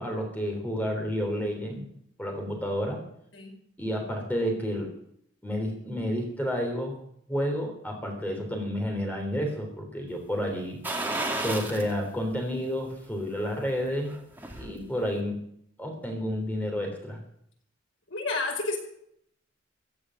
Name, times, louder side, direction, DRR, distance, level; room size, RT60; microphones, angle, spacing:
voice 1, 0.0-1.9 2.2-3.0 3.8-4.9 5.4-6.9 7.3-10.8 11.4-14.1 14.5-15.4 15.8-17.2, equal, 10° left, 2 dB, 3.6 m, -30 dB
sound 1, 10.8-11.9 12.3-12.4 13.9-14.7 15.1-15.2, right 2 dB, 10° right, 2.3 m, -32 dB
voice 2, 18.1-18.8, left 3 dB, 75° left, 2 dB, 5.2 m, -30 dB
16.0 x 8.6 x 9.7 m, 0.69 s
head